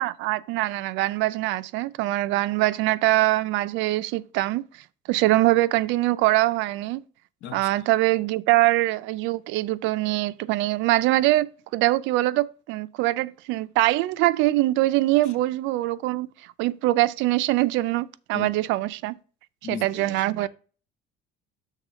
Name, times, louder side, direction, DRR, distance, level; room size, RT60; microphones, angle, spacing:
voice 1, 0.0-4.6 5.1-7.0 7.5-16.3 16.6-19.2 19.6-20.5, right 17 dB, 80° right, 0.4 m, -23 dB
voice 2, 19.6-20.5, left 8 dB, 80° left, 1.0 m, -38 dB
6.6 x 3.7 x 6.2 m
cardioid pair, 170°, 19 cm